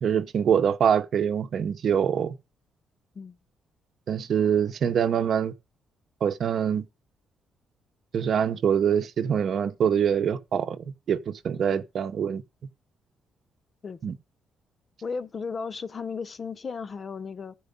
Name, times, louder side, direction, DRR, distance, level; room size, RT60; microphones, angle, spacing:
voice 1, 0.0-2.3 4.1-5.5 6.2-6.9 8.1-10.8 11.1-12.4 14.0-14.2, right 8 dB, 60° right, 0.8 m, -24 dB
voice 2, 15.0-17.6, left 5 dB, 40° left, 0.8 m, -35 dB
13.5 x 4.7 x 5.2 m
cardioid pair, 90°, 0 cm